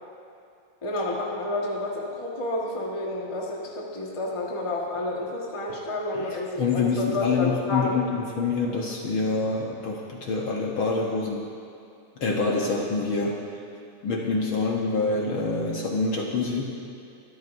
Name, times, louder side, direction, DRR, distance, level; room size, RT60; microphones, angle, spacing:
voice 1, 0.8-8.0, left 2 dB, 40° left, -3 dB, 0.4 m, -30 dB
voice 2, 6.1-11.5 12.2-13.5 14.0-16.8, left 4 dB, 60° left, -1 dB, 1.4 m, -26 dB
24.0 x 12.5 x 2.6 m, 2.5 s
omnidirectional pair, 3.4 m